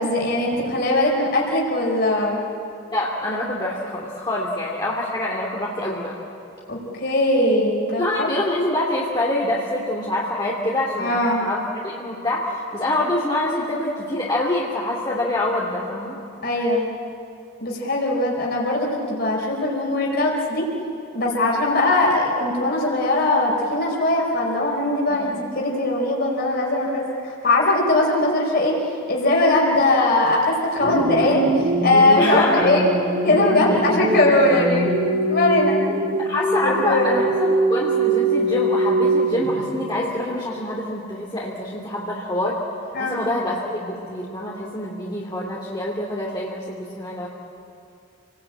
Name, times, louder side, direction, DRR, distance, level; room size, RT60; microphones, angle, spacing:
voice 1, 0.0-2.4 6.7-8.3 11.0-11.4 16.4-16.9 17.6-20.7 21.1-28.7 29.1-31.4 31.8-32.8 33.2-34.9 35.3-35.8 36.6-37.3 42.9-43.2, left 2 dB, 50° left, -2 dB, 4.6 m, -20 dB
voice 2, 2.9-6.2 8.0-16.2 25.1-25.3 32.2-32.7 36.2-42.6 43.0-47.3, left 1 dB, 20° left, -5 dB, 2.6 m, -25 dB
sound 1, 30.8-39.8, right 1 dB, 50° right, 3.4 m, -23 dB
29.0 x 19.5 x 8.7 m, 2.6 s
head